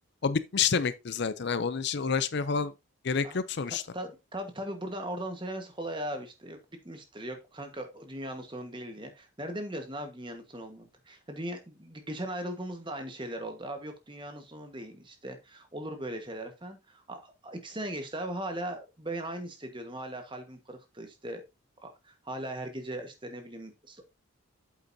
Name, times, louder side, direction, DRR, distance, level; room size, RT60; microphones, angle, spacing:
voice 1, 0.2-2.7 3.0-3.8, left 6 dB, 55° left, 0.5 m, -28 dB
voice 2, 3.9-6.6 6.8-21.4 21.8-24.0, right 1 dB, 20° right, 1.4 m, -39 dB
8.5 x 7.9 x 2.7 m
head